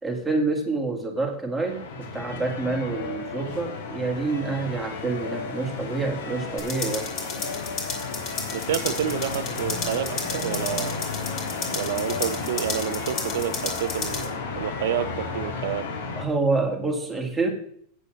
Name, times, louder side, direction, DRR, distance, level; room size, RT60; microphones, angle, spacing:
voice 1, 0.0-7.1 11.6-11.8 16.2-17.5, right 3 dB, 5° right, 0 dB, 1.7 m, -27 dB
sound 1, 1.7-16.2, left 4 dB, 85° left, 2.2 m, -33 dB
sound 2, 6.6-14.3, left 3 dB, 30° left, 2.5 m, -33 dB
voice 2, 8.5-11.0 11.7-15.8, right 10 dB, 80° right, 10 dB, 0.7 m, -29 dB
8.3 x 6.9 x 6.2 m, 0.63 s
supercardioid pair, 165°, 0 cm